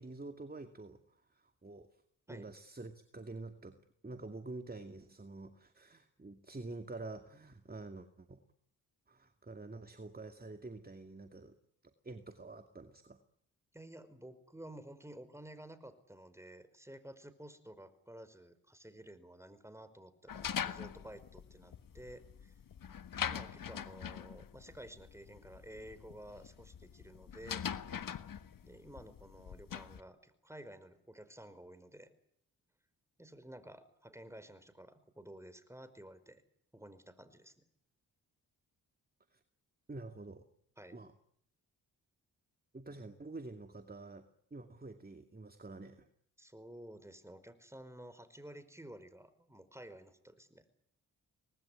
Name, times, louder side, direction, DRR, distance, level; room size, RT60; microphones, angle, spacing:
voice 1, 0.0-1.9 2.3-8.4 9.1-11.6 11.8-13.2 39.3-39.4 39.9-40.5 40.9-41.1 42.7-46.1, right 2 dB, 25° right, 7 dB, 2.4 m, -48 dB
voice 2, 13.7-22.5 23.2-27.6 28.6-32.1 33.2-36.4 36.7-37.6 40.8-41.0 46.4-50.6, right 1 dB, 5° right, 12 dB, 5.0 m, -52 dB
sound 1, 20.3-30.0, left 8 dB, 55° left, 1.6 m, -43 dB
24.5 x 19.5 x 10.0 m, 0.70 s
supercardioid pair, 45°, 39 cm